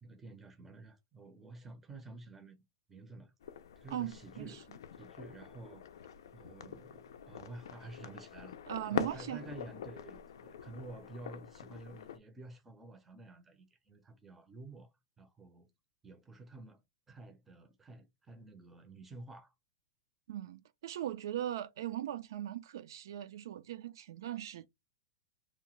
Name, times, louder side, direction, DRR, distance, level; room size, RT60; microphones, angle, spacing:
voice 1, 0.0-2.6 2.9-3.3 3.8-4.7 5.0-5.8 6.3-8.6 8.9-14.9 15.2-15.7 16.0-16.8 17.1-19.5, right 2 dB, 10° right, 0.5 m, -51 dB
sound 1, 3.4-12.2, left 9 dB, 90° left, 0.4 m, -44 dB
voice 2, 3.9-4.6 8.7-9.4 20.3-24.7, right 12 dB, 70° right, 0.4 m, -39 dB
2.8 x 2.1 x 2.9 m
supercardioid pair, 165°, 2 cm